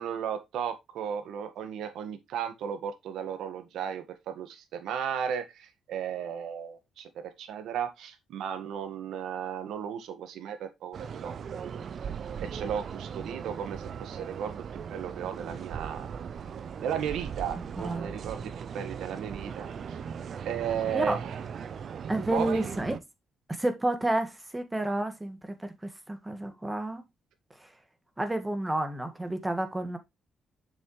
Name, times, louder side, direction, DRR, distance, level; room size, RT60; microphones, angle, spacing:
voice 1, 0.0-7.1 7.4-11.8 12.4-16.1 16.8-20.0 20.4-21.2 22.3-22.7, right 8 dB, 80° right, 1.7 m, -35 dB
sound 1, 10.9-23.0, right 7 dB, 55° right, 0.7 m, -39 dB
voice 2, 17.8-18.1 20.9-21.2 22.1-23.0 23.5-27.0 28.2-30.0, right 1 dB, 15° right, 1.9 m, -30 dB
7.2 x 6.5 x 3.2 m
cardioid pair, 90°, 0 cm